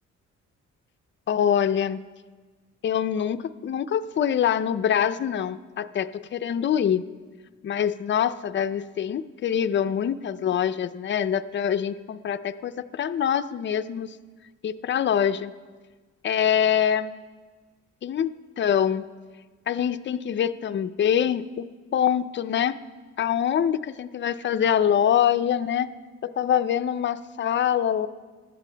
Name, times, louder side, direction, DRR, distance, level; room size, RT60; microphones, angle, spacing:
voice 1, 1.3-2.0 2.8-7.0 7.6-14.1 14.6-15.5 16.2-17.2 18.0-18.3 18.6-19.0 19.7-22.8 23.2-25.9 26.2-28.1, left 9 dB, 40° left, 12 dB, 0.5 m, -24 dB
20.0 x 13.0 x 2.2 m, 1.4 s
cardioid pair, 90°, 30 cm